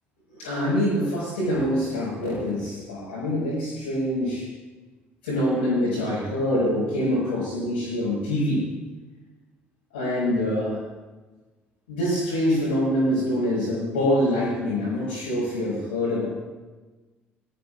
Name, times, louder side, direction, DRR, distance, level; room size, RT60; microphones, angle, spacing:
voice 1, 0.3-4.5 5.2-8.7 9.9-10.8 11.9-16.3, left 1 dB, 75° left, -9 dB, 5.3 m, -25 dB
21.0 x 13.0 x 2.5 m, 1.2 s
figure-of-eight pair, 50°, 6 cm